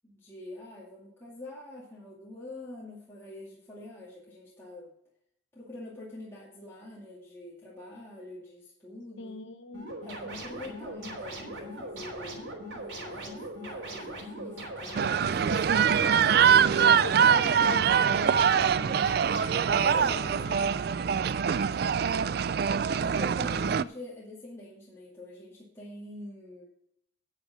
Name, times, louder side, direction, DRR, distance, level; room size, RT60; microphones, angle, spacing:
voice 1, 0.0-4.9 5.5-9.4 10.0-15.7 16.2-16.5 17.1-17.6 19.7-21.4 23.0-26.6, left 1 dB, 15° left, -7 dB, 2.3 m, -45 dB
voice 2, 9.2-9.9 17.0-18.8 20.3-20.8, left 3 dB, 70° left, 9 dB, 1.0 m, -40 dB
sound 1, 9.7-19.9, right 1 dB, 85° right, 3.5 m, -40 dB
sound 2, 15.0-23.8, right 7 dB, 50° right, 0.3 m, -24 dB
9.3 x 8.3 x 6.2 m, 0.74 s
head